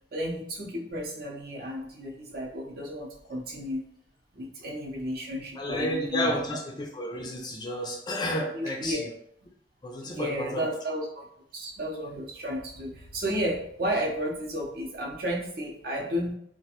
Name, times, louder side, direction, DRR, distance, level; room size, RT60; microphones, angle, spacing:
voice 1, 0.1-3.9 4.3-6.4 8.5-9.1 10.0-11.2 11.5-16.3, equal, 55° right, -2 dB, 0.6 m, -32 dB
voice 2, 5.6-9.1 9.8-10.7, left 1 dB, 25° left, 1 dB, 0.4 m, -31 dB
2.4 x 2.2 x 2.8 m, 0.70 s
head